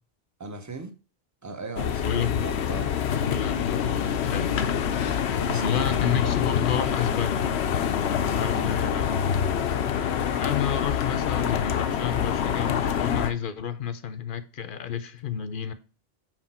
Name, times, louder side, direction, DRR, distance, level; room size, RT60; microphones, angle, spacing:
voice 1, 0.4-0.9 1.4-3.0 5.4-6.4 8.2-9.0 9.8-10.0, right 3 dB, 20° right, 0.8 m, -38 dB
sound 1, 1.8-13.3, left 8 dB, 85° left, 0.9 m, -26 dB
voice 2, 2.0-2.4 3.2-4.5 4.9-5.2 5.5-7.5 8.3-9.2 10.4-15.7, left 8 dB, 60° left, 0.8 m, -30 dB
6.1 x 5.1 x 4.2 m
omnidirectional pair, 1.1 m